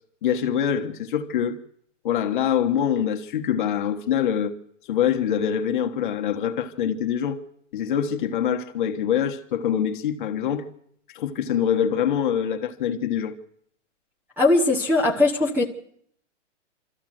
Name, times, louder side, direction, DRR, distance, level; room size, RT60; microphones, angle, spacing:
voice 1, 0.2-1.6 2.0-4.5 4.9-7.4 7.7-10.7 11.1-13.4, left 9 dB, 40° left, 1.4 m, -24 dB
voice 2, 14.4-15.6, left 2 dB, 5° right, 1.1 m, -20 dB
24.5 x 14.0 x 7.7 m
hypercardioid pair, 160°, 37 cm